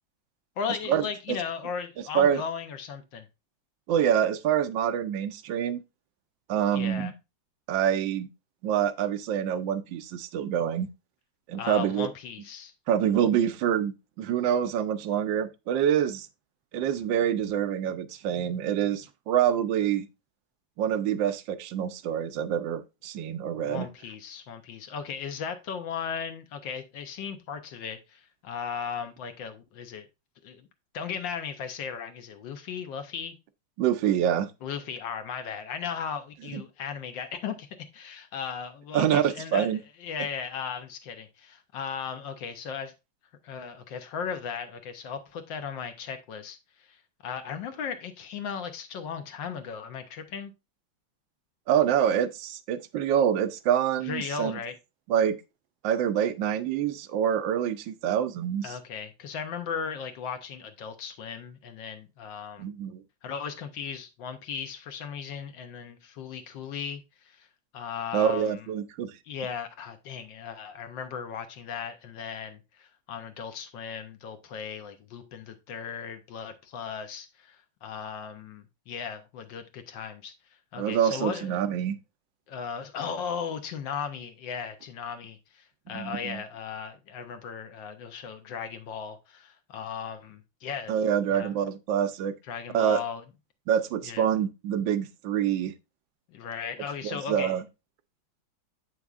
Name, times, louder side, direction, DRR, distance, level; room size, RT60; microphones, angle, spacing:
voice 1, 0.6-3.3 6.7-7.1 11.6-12.7 23.5-30.1 30.4-30.7 30.9-33.3 34.6-37.7 37.9-39.7 40.0-42.9 43.4-50.5 54.0-54.8 58.6-62.7 63.2-67.5 67.7-68.6 69.2-80.3 80.7-81.6 82.5-90.9 91.3-91.5 92.4-93.2 94.0-94.3 96.3-97.6, left 7 dB, 75° left, 1.5 m, -36 dB
voice 2, 3.9-5.8 6.5-7.1 7.7-8.3 8.6-10.9 11.5-12.1 12.9-16.3 16.7-20.1 20.8-23.9 33.8-34.5 38.9-39.8 51.7-54.6 55.1-55.4 55.8-58.7 62.6-63.0 68.1-69.1 80.8-82.0 85.9-86.4 90.9-92.3 92.7-93.0 93.7-95.7 97.0-97.6, right 9 dB, 75° right, 1.3 m, -26 dB
8.0 x 6.0 x 2.4 m
omnidirectional pair, 2.1 m